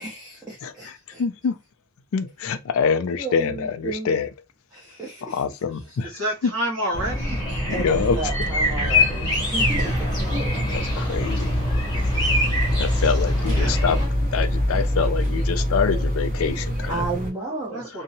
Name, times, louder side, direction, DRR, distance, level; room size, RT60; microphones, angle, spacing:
voice 1, 0.0-1.2 3.2-4.2 4.7-5.4 7.7-10.7 16.9-17.9, right 3 dB, 15° right, 0.6 m, -33 dB
voice 2, 0.6-1.6 2.1-4.3 5.2-6.1 7.7-8.2 10.7-11.6 12.8-17.1, left 5 dB, 70° left, 0.4 m, -25 dB
voice 3, 6.0-7.5 13.4-13.8 17.7-18.0, equal, 70° right, 1.0 m, -29 dB
sound 1, 6.9-14.1, left 1 dB, 20° left, 0.8 m, -25 dB
sound 2, 9.5-17.3, equal, 35° right, 0.9 m, -25 dB
2.7 x 2.0 x 2.6 m
head